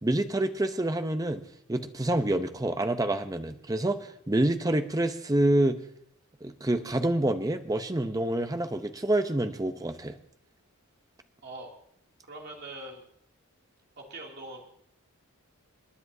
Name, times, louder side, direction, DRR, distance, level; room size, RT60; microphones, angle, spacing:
voice 1, 0.0-1.4 1.7-5.8 6.4-10.1, right 1 dB, 15° right, 8 dB, 0.6 m, -27 dB
voice 2, 12.3-13.0 14.0-14.6, right 2 dB, 50° right, -1 dB, 2.6 m, -42 dB
28.5 x 9.8 x 2.7 m, 0.69 s
head